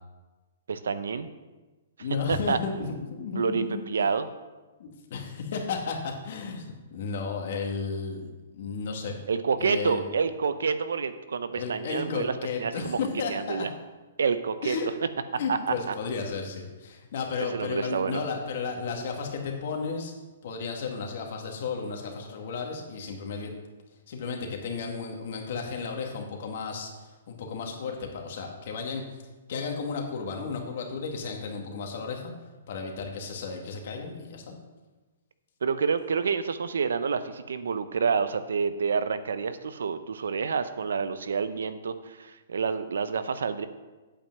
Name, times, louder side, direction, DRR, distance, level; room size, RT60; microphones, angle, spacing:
voice 1, 0.7-1.3 2.3-2.6 3.4-4.3 9.3-13.0 13.3-13.7 14.2-14.8 15.5-15.9 17.5-18.2 35.6-43.7, right 5 dB, 85° right, 12 dB, 0.7 m, -28 dB
voice 2, 2.0-4.1 4.8-9.2 9.6-10.0 11.5-13.7 14.6-14.9 15.4-20.1 20.4-23.5 24.1-26.9 27.3-29.0 29.5-32.3 32.7-34.5, left 5 dB, 60° left, 1 dB, 2.0 m, -33 dB
8.7 x 5.4 x 7.3 m, 1.2 s
hypercardioid pair, 145°, 0 cm